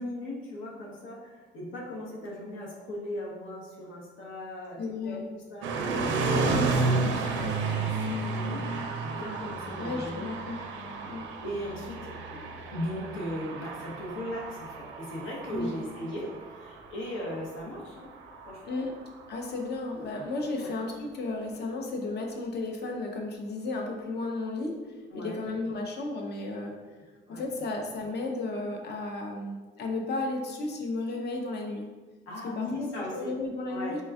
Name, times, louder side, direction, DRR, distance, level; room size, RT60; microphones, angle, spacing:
voice 1, 0.0-5.9 6.1-6.5 6.8-10.3 11.4-12.1 12.7-18.1 18.5-18.9 20.6-20.7 25.1-25.4 27.3-27.4 32.3-33.3 33.7-34.0, left 1 dB, 85° left, -3 dB, 0.8 m, -38 dB
voice 2, 4.8-5.2 6.2-6.4 9.8-10.7 11.1-11.3 15.5-15.7 18.6-18.9 19.3-24.8 25.1-26.7 27.3-31.9 32.4-34.0, left 2 dB, 55° left, 2 dB, 0.6 m, -34 dB
sound 1, 5.6-19.6, right 3 dB, 70° right, 0.4 m, -32 dB
4.2 x 2.2 x 2.3 m, 1.3 s
cardioid pair, 90°, 20 cm